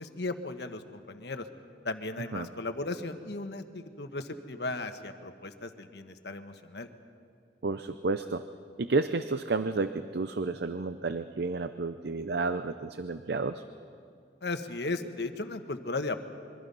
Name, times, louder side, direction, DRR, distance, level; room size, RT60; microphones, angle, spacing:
voice 1, 0.0-1.4 1.8-6.9 14.4-16.2, left 2 dB, 75° left, 7 dB, 1.3 m, -36 dB
voice 2, 7.6-8.4 8.8-13.6, right 3 dB, 70° right, 11 dB, 0.6 m, -31 dB
26.0 x 23.5 x 5.5 m, 2.4 s
head